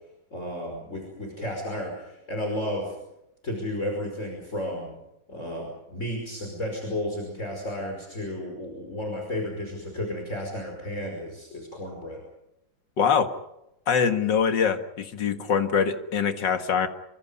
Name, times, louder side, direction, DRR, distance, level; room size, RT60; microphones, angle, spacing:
voice 1, 0.3-3.0 3.4-4.9 5.3-12.2, left 1 dB, 35° left, 1 dB, 5.8 m, -33 dB
voice 2, 13.0-13.3 13.9-16.9, left 6 dB, 65° left, 7 dB, 2.4 m, -23 dB
28.0 x 25.0 x 5.5 m, 0.86 s
omnidirectional pair, 2.1 m